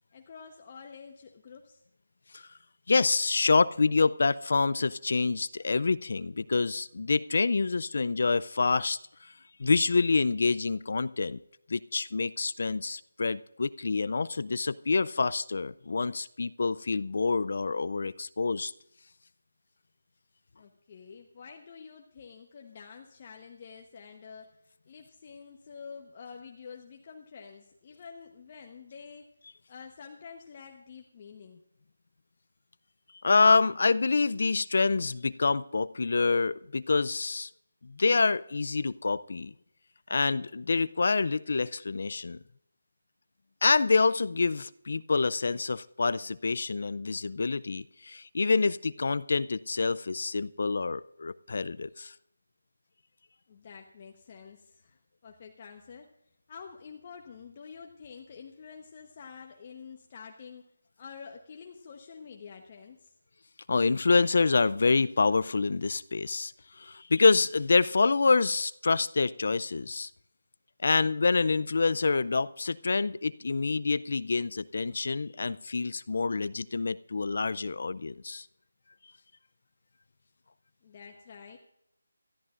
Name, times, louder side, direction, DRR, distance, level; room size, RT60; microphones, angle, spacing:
voice 1, 0.1-1.8 20.6-24.5 24.9-29.3 29.7-31.6 53.5-56.1 56.5-60.7 61.0-63.1 80.8-81.6, left 6 dB, 35° left, 2 dB, 1.0 m, -48 dB
voice 2, 2.9-9.3 9.6-11.4 11.7-18.7 33.2-37.5 37.9-39.5 40.1-42.4 43.6-52.1 63.7-66.5 66.8-70.1 70.8-78.5, left 4 dB, 60° left, 17 dB, 0.4 m, -27 dB
22.5 x 13.5 x 2.5 m, 0.76 s
figure-of-eight pair, 160°, 0 cm